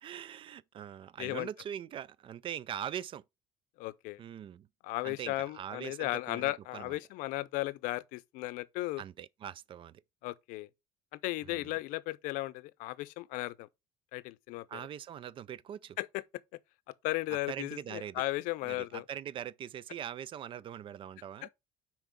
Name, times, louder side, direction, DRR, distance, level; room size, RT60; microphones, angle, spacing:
voice 1, 0.0-3.2 4.2-4.7 5.0-7.0 9.0-10.0 11.4-11.8 14.7-16.0 17.5-18.2 18.6-21.5, right 10 dB, 40° right, 0.4 m, -42 dB
voice 2, 1.2-1.5 3.8-4.2 4.8-9.0 10.2-10.7 11.1-13.7 14.1-14.8 16.0-16.2 17.0-19.0 21.4-21.5, left 19 dB, 80° left, 0.6 m, -35 dB
5.9 x 4.5 x 5.0 m
cardioid pair, 125°, 13 cm